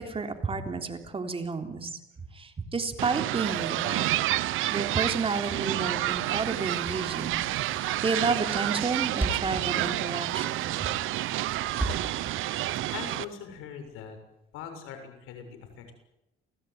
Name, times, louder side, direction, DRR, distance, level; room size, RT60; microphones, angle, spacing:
voice 1, 0.0-2.0 2.3-4.1 4.7-10.6, right 4 dB, 25° right, 5 dB, 3.6 m, -31 dB
sound 1, 3.0-13.3, right 15 dB, 75° right, 1.0 m, -29 dB
Thump thud, 9.2-13.2, right 1 dB, 10° right, 4.7 m, -33 dB
voice 2, 12.9-14.2 14.5-15.9, left 7 dB, 90° left, 6 dB, 7.0 m, -41 dB
28.5 x 18.5 x 9.5 m, 0.87 s
cardioid pair, 115°, 21 cm